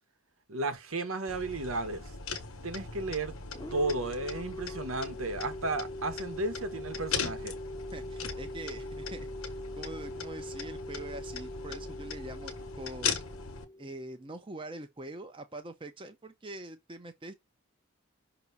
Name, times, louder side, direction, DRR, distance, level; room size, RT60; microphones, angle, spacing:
voice 1, 0.5-2.1 2.6-3.3 3.7-7.6, right 2 dB, 80° right, 1.2 m, -33 dB
sound 1, 1.3-13.6, left 5 dB, 85° left, 1.3 m, -39 dB
sound 2, 3.5-14.2, left 1 dB, 15° left, 0.6 m, -42 dB
voice 2, 7.9-13.2 13.8-17.3, right 2 dB, 25° right, 0.7 m, -44 dB
5.9 x 3.0 x 5.4 m
head